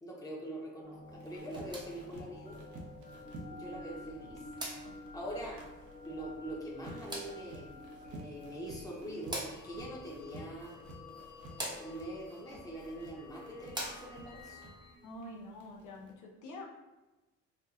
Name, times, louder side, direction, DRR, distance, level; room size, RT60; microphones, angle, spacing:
voice 1, 0.0-2.6 3.5-4.4 5.1-5.6 6.0-7.7 8.1-10.8 11.8-14.6, right 1 dB, 10° left, -3 dB, 1.0 m, -43 dB
sound 1, 0.8-15.0, left 2 dB, 30° left, 1.1 m, -51 dB
sound 2, 1.0-16.1, right 2 dB, 75° right, 0.9 m, -53 dB
sound 3, 1.4-14.4, equal, 15° right, 0.9 m, -47 dB
voice 2, 15.0-16.7, left 1 dB, 75° left, -1 dB, 0.7 m, -46 dB
4.4 x 2.6 x 2.5 m, 1.1 s
cardioid pair, 90°, 30 cm